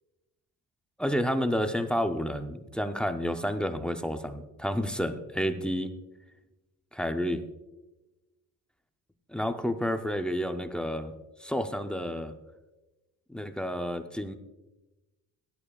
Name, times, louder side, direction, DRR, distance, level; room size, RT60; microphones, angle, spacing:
voice 1, 1.0-5.9 6.9-7.4 9.3-11.1 11.4-12.3 13.3-14.4, equal, 5° left, 7 dB, 0.4 m, -30 dB
17.5 x 11.0 x 2.3 m, 1.1 s
cardioid pair, 170°, 36 cm